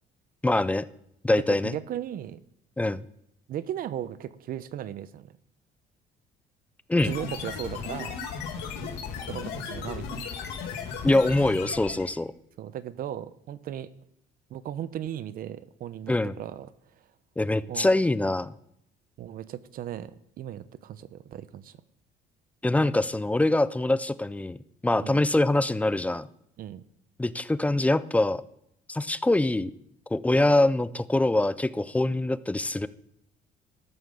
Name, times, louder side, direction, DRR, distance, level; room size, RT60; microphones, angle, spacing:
voice 1, 0.4-0.9 1.2-1.8 2.8-3.0 6.9-7.2 11.0-12.3 16.1-16.3 17.4-18.5 22.6-24.6 24.8-26.3 27.2-28.4 28.9-29.7 30.1-32.9, left 2 dB, 10° left, 16 dB, 0.4 m, -24 dB
voice 2, 1.3-2.4 3.5-5.4 7.0-8.2 9.2-10.3 12.6-13.9 14.5-16.7 17.7-17.9 19.2-21.8 25.0-25.2 26.6-26.8, right 11 dB, 60° right, 16 dB, 0.7 m, -37 dB
sound 1, 7.0-12.2, left 6 dB, 85° left, 2.0 m, -36 dB
13.0 x 5.9 x 6.8 m, 0.74 s
cardioid pair, 110°, 17 cm